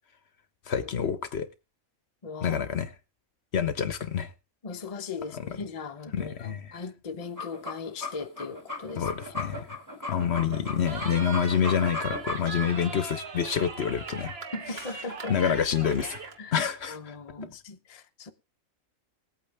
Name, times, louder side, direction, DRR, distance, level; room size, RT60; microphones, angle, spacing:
voice 1, 0.7-1.5 2.4-2.9 3.5-4.3 5.3-5.4 6.1-6.8 9.0-9.7 10.1-14.3 15.3-16.3 16.5-17.2, left 8 dB, 55° left, 1.0 m, -27 dB
voice 2, 2.2-2.6 4.6-9.1 14.5-15.7 16.4-18.3, left 4 dB, 35° left, 0.7 m, -39 dB
sound 1, 7.2-12.7, left 2 dB, 15° right, 1.8 m, -36 dB
Cheering, 10.9-16.4, right 4 dB, 50° right, 1.4 m, -39 dB
19.5 x 8.7 x 3.4 m
omnidirectional pair, 1.4 m